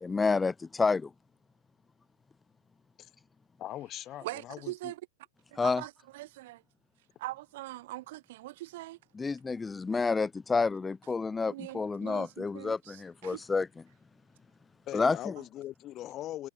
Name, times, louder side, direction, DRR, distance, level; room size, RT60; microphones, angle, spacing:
voice 1, 0.0-1.1 5.6-5.8 9.2-13.7 14.9-15.2, left 4 dB, 10° left, 0.7 m, -29 dB
voice 2, 3.6-4.9 14.9-16.5, left 13 dB, 30° left, 1.1 m, -41 dB
voice 3, 4.2-5.0 5.5-6.6 7.2-9.0 11.4-13.4, right 17 dB, 55° right, 4.4 m, -42 dB
hypercardioid pair, 125°, 0 cm